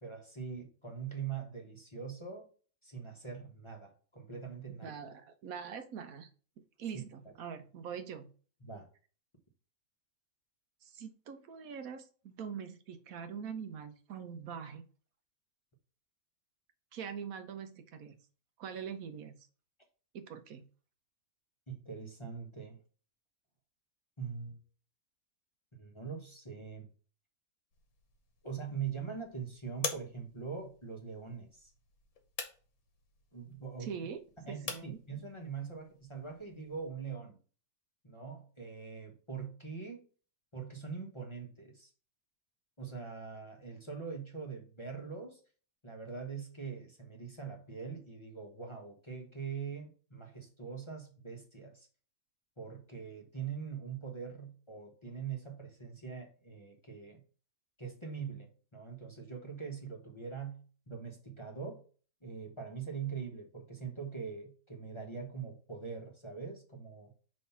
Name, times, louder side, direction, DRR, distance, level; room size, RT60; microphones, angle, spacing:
voice 1, 0.0-2.5 2.8-4.9 8.6-8.9 21.7-22.8 24.2-24.6 25.8-26.9 28.4-31.7 33.3-33.9 34.4-37.4 38.0-40.0 40.5-41.9 42.8-45.4 45.8-51.9 52.6-57.2 57.8-61.8 62.2-67.1, right 6 dB, 25° left, 0 dB, 0.9 m, -43 dB
voice 2, 4.8-6.3 6.8-8.3 10.8-14.8 16.9-18.2 18.6-19.4 20.1-20.6 33.8-34.2 34.5-35.0, right 7 dB, 75° right, 9 dB, 1.2 m, -43 dB
sound 1, 27.7-36.9, left 5 dB, 80° left, 1.6 m, -47 dB
5.4 x 3.2 x 5.5 m, 0.39 s
omnidirectional pair, 1.5 m